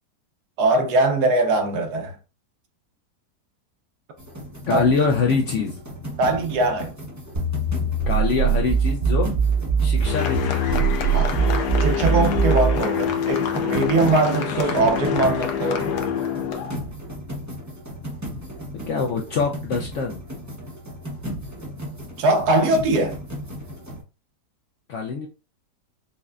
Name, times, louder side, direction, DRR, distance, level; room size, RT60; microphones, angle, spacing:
voice 1, 0.6-2.1 4.7-4.9 6.2-6.9 11.1-11.3 11.8-15.9 22.2-23.2, right 2 dB, 75° right, 1.3 m, -21 dB
sound 1, 4.2-24.0, equal, 20° right, 0.5 m, -35 dB
voice 2, 4.7-5.8 8.1-9.3 9.8-10.7 14.5-14.8 18.7-20.1 24.9-25.3, left 4 dB, 70° left, 0.7 m, -24 dB
sound 2, 7.3-12.8, right 5 dB, 45° right, 1.7 m, -22 dB
sound 3, 10.0-16.8, left 8 dB, 85° left, 1.2 m, -26 dB
5.6 x 2.1 x 2.4 m
omnidirectional pair, 1.7 m